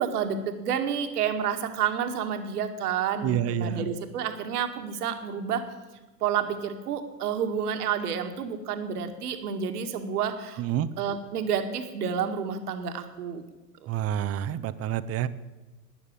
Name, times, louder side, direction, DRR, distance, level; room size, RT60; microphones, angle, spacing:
voice 1, 0.0-5.6 6.2-10.6 11.0-13.4 13.8-13.9, right 7 dB, 70° right, 6 dB, 2.0 m, -29 dB
voice 2, 3.2-3.9 10.6-10.9 13.9-15.3, right 11 dB, 30° right, 15 dB, 0.8 m, -28 dB
13.0 x 9.7 x 8.7 m, 1.2 s
hypercardioid pair, 100°, 47 cm